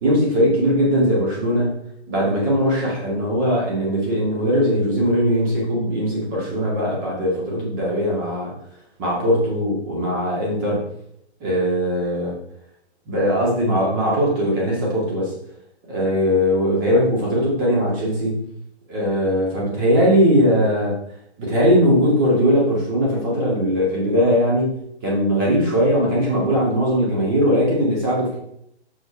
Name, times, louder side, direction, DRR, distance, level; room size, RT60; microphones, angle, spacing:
voice 1, 0.0-1.8 2.1-8.5 9.0-10.9 11.4-12.4 13.1-15.3 15.9-18.4 18.9-20.9 21.4-28.4, equal, 20° right, -4 dB, 2.1 m, -20 dB
7.3 x 6.2 x 4.5 m, 0.76 s
hypercardioid pair, 175°, 35 cm